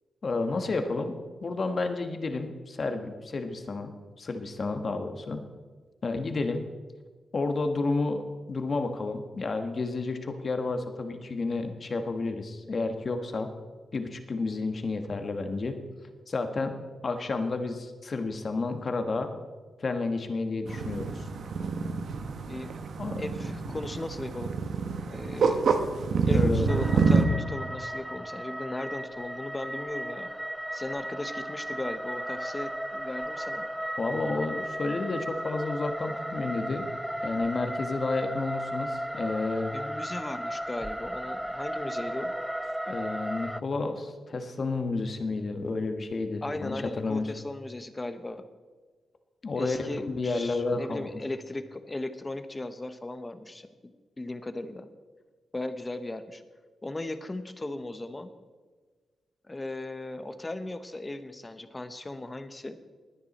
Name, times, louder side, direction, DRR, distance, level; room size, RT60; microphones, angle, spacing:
voice 1, 0.2-3.9 4.2-5.4 6.0-6.6 7.3-8.2 8.5-13.5 13.9-15.8 16.3-16.8 17.0-19.3 19.8-21.3 23.0-23.2 26.3-26.7 34.0-36.8 37.2-39.7 42.9-47.3 49.4-51.1, left 3 dB, 40° left, 6 dB, 1.4 m, -31 dB
sound 1, 20.7-27.3, right 5 dB, 75° right, 1.2 m, -27 dB
voice 2, 23.2-24.7 25.1-25.6 26.3-30.3 30.7-33.6 39.7-42.3 46.4-48.4 49.5-54.9 55.5-56.4 56.8-58.3 59.4-62.8, left 2 dB, 20° left, 9 dB, 1.0 m, -37 dB
sound 2, 26.7-43.6, equal, 5° right, 0.3 m, -35 dB
20.5 x 9.6 x 4.3 m, 1.4 s
wide cardioid pair, 120°, 0 cm